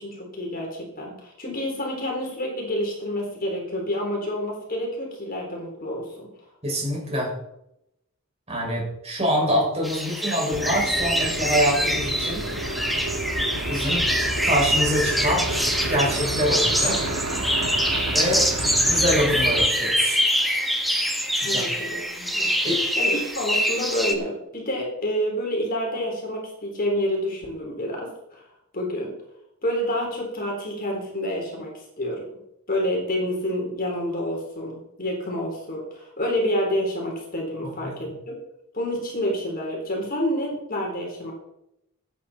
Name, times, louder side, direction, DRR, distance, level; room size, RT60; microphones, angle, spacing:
voice 1, 0.0-6.3 21.4-22.7 23.0-28.5 28.7-29.1 29.6-32.3 32.7-38.4 38.7-41.3, equal, 40° left, 0 dB, 3.9 m, -28 dB
voice 2, 6.6-7.3 8.5-12.5 13.7-14.1 14.4-15.5 15.9-17.1 18.1-18.5 18.8-20.2 21.4-21.6 22.6-22.8 37.8-37.9, equal, 30° right, -3 dB, 5.8 m, -25 dB
sound 1, 9.8-24.1, equal, ahead, 1.4 m, -24 dB
sound 2, 10.5-19.7, right 1 dB, 65° right, 1.6 m, -30 dB
16.0 x 9.6 x 4.3 m, 0.81 s
head